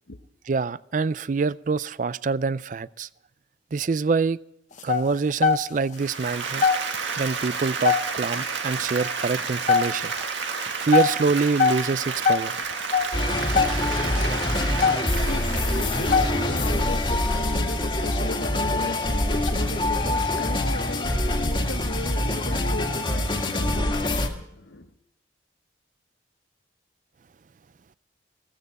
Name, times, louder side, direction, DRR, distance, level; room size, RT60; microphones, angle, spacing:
voice 1, 0.5-3.1 3.7-4.4 4.8-6.7 7.2-10.1 10.8-12.6, right 4 dB, 45° right, 0.4 m, -25 dB
sound 1, 4.8-5.9 6.3-6.4 6.6-7.2 7.5-8.4 8.8-9.0 9.4-10.2 10.7-14.1 14.5-14.6 14.8-15.4 15.9-16.7 17.2-17.4 17.9-18.0 18.5-18.7 19.2-19.5, left 6 dB, 40° left, 1.0 m, -22 dB
Applause, 6.0-17.3, right 5 dB, 85° right, 1.9 m, -31 dB
sound 2, 13.1-24.3, left 1 dB, 25° left, 1.8 m, -25 dB
voice 2, 15.2-24.9, left 2 dB, 90° left, 1.1 m, -36 dB
16.0 x 15.0 x 4.1 m
head